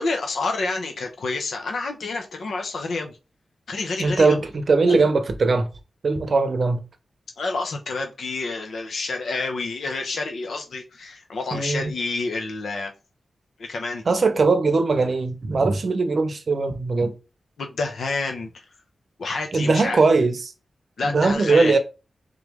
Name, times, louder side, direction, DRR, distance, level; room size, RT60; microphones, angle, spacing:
voice 1, 0.0-3.2 3.7-4.5 4.8-5.1 7.4-12.9 13.6-14.2 17.6-18.7 19.2-20.0 21.0-21.8, left 3 dB, 85° left, 0.7 m, -29 dB
voice 2, 4.0-5.7 6.0-6.8 11.5-11.9 14.1-17.1 19.5-20.4 21.0-21.8, right 3 dB, 55° right, 0.7 m, -20 dB
3.7 x 3.1 x 3.4 m
wide cardioid pair, 125°, 0 cm